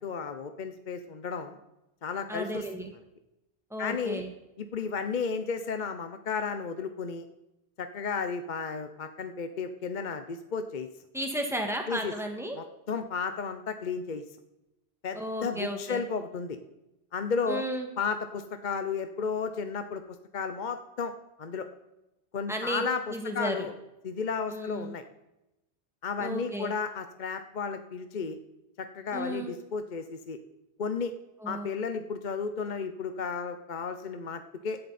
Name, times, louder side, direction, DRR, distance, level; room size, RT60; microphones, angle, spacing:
voice 1, 0.0-1.6 2.0-2.7 3.8-4.2 4.6-7.3 7.8-10.9 11.9-12.1 12.5-14.2 15.0-16.6 17.1-17.6 18.0-20.0 20.3-21.1 21.4-21.7 22.3-23.7 24.0-25.0 26.0-28.4 28.8-30.4 30.8-31.1 31.5-34.8, left 5 dB, 45° left, 8 dB, 0.8 m, -33 dB
voice 2, 2.3-2.9 3.7-4.3 11.1-12.6 15.1-16.0 17.5-17.9 22.5-22.8 23.1-23.7 24.5-24.9 26.2-26.7 29.1-29.5 31.4-31.7, right 1 dB, ahead, 3 dB, 1.9 m, -34 dB
16.5 x 11.0 x 4.2 m, 0.94 s
omnidirectional pair, 1.1 m